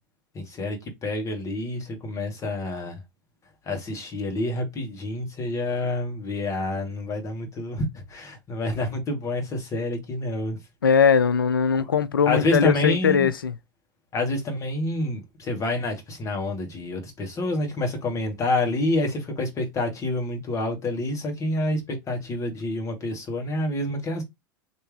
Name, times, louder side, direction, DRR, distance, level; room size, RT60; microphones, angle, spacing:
voice 1, 0.3-3.0 3.6-10.6 12.3-13.3 14.1-24.2, left 2 dB, 30° left, 1.5 m, -28 dB
voice 2, 10.8-13.5, left 6 dB, 80° left, 0.4 m, -20 dB
3.2 x 2.6 x 3.2 m
figure-of-eight pair, 85°, 11 cm